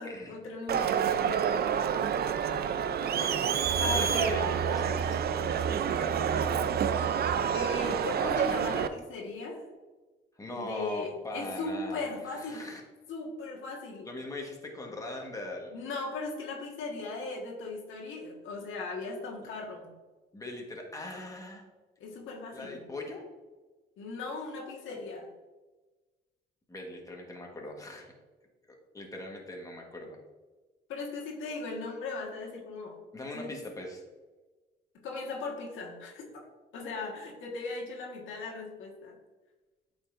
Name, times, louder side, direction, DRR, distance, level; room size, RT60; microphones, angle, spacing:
voice 1, 0.0-1.5 3.8-4.6 7.5-9.6 10.5-12.6 13.1-14.1 15.7-19.9 22.0-22.8 24.0-25.3 30.9-33.0 33.3-33.5 35.0-36.5 36.7-39.1, left 3 dB, 85° left, -1 dB, 1.5 m, -38 dB
Crowd, 0.7-8.9, right 8 dB, 55° right, 0.5 m, -28 dB
voice 2, 3.1-5.5 5.9-6.7 10.4-12.8 14.0-15.7 20.3-21.7 22.5-23.2 26.7-28.1 28.9-30.2 33.1-34.0, left 2 dB, 15° left, 0 dB, 1.4 m, -41 dB
8.4 x 5.2 x 2.5 m, 1.2 s
cardioid pair, 90°, 20 cm